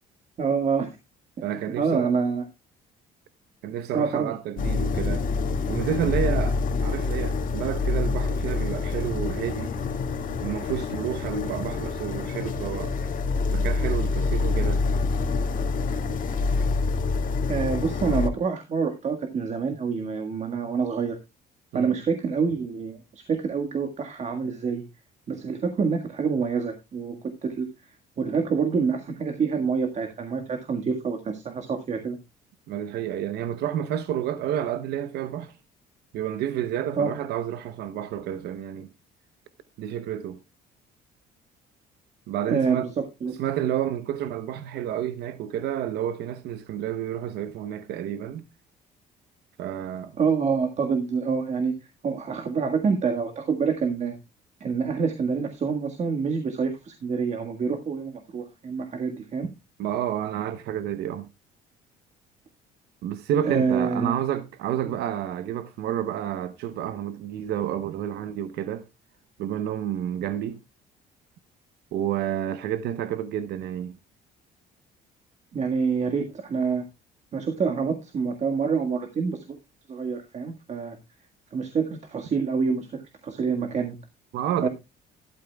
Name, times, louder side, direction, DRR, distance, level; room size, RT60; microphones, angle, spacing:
voice 1, 0.4-0.9 1.6-2.4 3.9-4.3 17.5-21.2 21.7-24.8 25.3-27.2 27.4-32.2 36.9-37.1 42.5-43.7 50.2-51.7 52.0-54.2 54.6-59.5 63.4-64.2 64.8-65.0 75.5-76.8 77.3-79.4 79.9-81.0 81.5-82.9 83.2-84.0 84.6-84.7, right 5 dB, 45° right, 1.7 m, -27 dB
voice 2, 1.4-2.1 3.6-5.3 5.7-9.7 10.4-12.9 13.5-14.8 21.7-21.9 32.7-35.5 36.1-38.9 39.8-40.4 42.3-42.9 43.4-48.4 49.6-50.2 59.8-61.3 63.0-68.8 69.4-70.6 71.9-74.0 84.3-84.7, right 10 dB, 75° right, 0.9 m, -30 dB
sound 1, 4.6-18.3, left 4 dB, 55° left, 2.0 m, -26 dB
13.0 x 12.0 x 2.3 m
cardioid pair, 110°, 17 cm